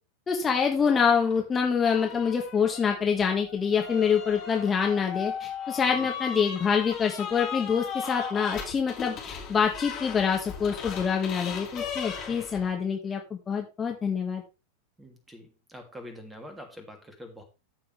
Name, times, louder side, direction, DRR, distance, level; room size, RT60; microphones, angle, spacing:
voice 1, 0.3-14.4, left 6 dB, 20° left, 2 dB, 1.9 m, -26 dB
Door Squeaks, 0.8-1.4 1.8-12.7, left 7 dB, 35° left, 5.0 m, -37 dB
voice 2, 15.0-17.4, left 1 dB, 10° right, 5 dB, 2.8 m, -45 dB
14.0 x 6.9 x 3.4 m, 0.29 s
figure-of-eight pair, 90°, 0 cm